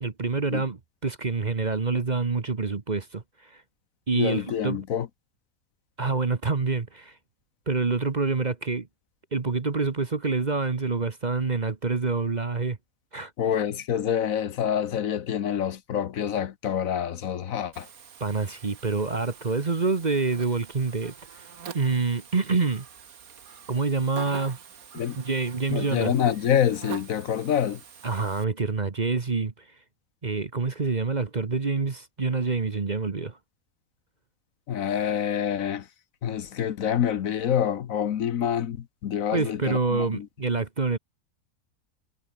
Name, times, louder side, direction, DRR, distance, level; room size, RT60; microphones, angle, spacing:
voice 1, 0.0-3.6 4.1-4.8 6.0-7.2 7.7-8.9 9.3-12.8 13.1-13.3 18.2-21.4 21.7-22.8 23.7-24.6 24.9-26.2 28.0-29.7 30.2-33.4 39.3-41.0, right 4 dB, 30° right, 1.2 m, -27 dB
voice 2, 4.1-5.1 13.4-17.9 24.9-25.2 25.7-27.8 34.7-35.9 36.2-40.2, left 9 dB, 65° left, 1.3 m, -27 dB
Buzz, 17.7-28.4, right 7 dB, 70° right, 1.9 m, -45 dB
omnidirectional pair, 1.6 m